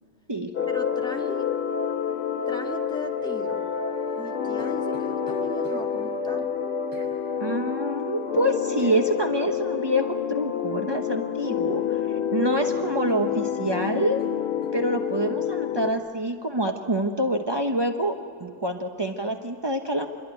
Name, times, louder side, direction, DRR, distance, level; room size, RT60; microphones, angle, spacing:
sound 1, 0.5-15.9, left 7 dB, 85° left, 2.2 m, -28 dB
voice 1, 0.7-1.5 2.5-3.6 4.2-6.5, left 1 dB, ahead, 2 dB, 1.7 m, -38 dB
sound 2, 4.1-5.8 6.9-7.1 8.8-9.0 11.0-11.3 11.6-12.3 12.6-12.7 13.1-14.8 15.2-15.4, right 1 dB, 75° right, 7.5 m, -52 dB
voice 2, 7.4-11.8 12.3-14.2 14.7-18.1 18.4-20.1, right 1 dB, 30° right, 4 dB, 0.4 m, -26 dB
27.5 x 22.0 x 9.2 m, 2.4 s
omnidirectional pair, 2.3 m